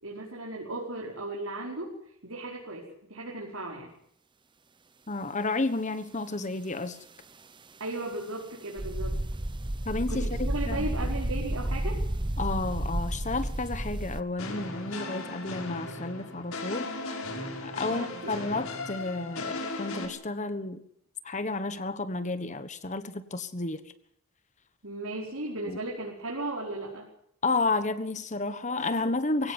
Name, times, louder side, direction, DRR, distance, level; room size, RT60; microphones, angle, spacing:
voice 1, 0.0-1.9 2.2-3.9 7.8-9.2 10.1-12.0 17.9-18.5 24.8-27.1, right 2 dB, 80° right, -2 dB, 5.1 m, -36 dB
voice 2, 5.1-7.0 9.8-10.2 10.7-10.9 12.4-17.1 17.6-20.8 21.2-23.8 25.7-25.8 27.4-29.5, left 3 dB, 35° left, 11 dB, 1.3 m, -31 dB
sound 1, 8.8-14.2, right 1 dB, 20° right, 1.0 m, -31 dB
sound 2, 14.4-20.1, left 2 dB, 85° left, 5.5 m, -37 dB
23.0 x 17.0 x 9.7 m, 0.71 s
head